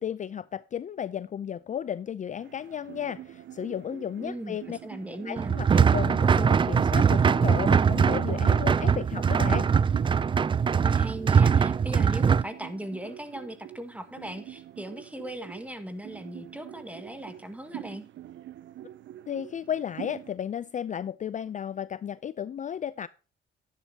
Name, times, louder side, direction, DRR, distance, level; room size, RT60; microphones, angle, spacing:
voice 1, 0.0-4.8 5.2-9.7 19.3-23.1, left 9 dB, 40° left, 0.4 m, -34 dB
sound 1, 2.4-20.4, right 12 dB, 70° right, 0.6 m, -46 dB
voice 2, 4.2-5.6 10.8-18.0, right 1 dB, 5° right, 1.7 m, -38 dB
sound 2, 5.4-12.4, right 6 dB, 25° right, 0.3 m, -22 dB
10.5 x 10.5 x 2.8 m
cardioid pair, 90°, 20 cm